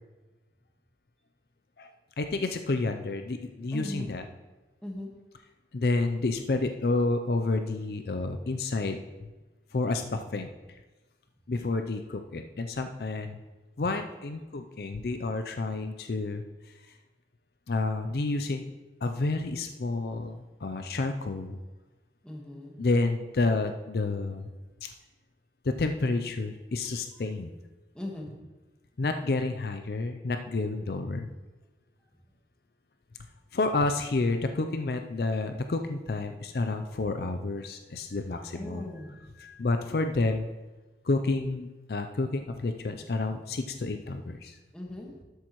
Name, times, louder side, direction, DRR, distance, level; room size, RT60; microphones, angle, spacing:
voice 1, 2.2-4.2 5.7-9.0 9.7-10.5 11.5-13.4 13.8-16.4 17.7-18.6 19.0-21.6 22.8-24.5 24.8-24.9 25.7-27.5 29.0-31.3 33.5-38.9 39.4-40.5 41.1-44.5, left 3 dB, 60° left, 7 dB, 0.5 m, -29 dB
voice 2, 3.7-4.1 4.8-5.1 22.2-22.7 27.9-28.4 38.5-39.2 44.7-45.1, left 1 dB, 5° left, -1 dB, 1.5 m, -38 dB
12.5 x 8.2 x 3.1 m, 1.2 s
head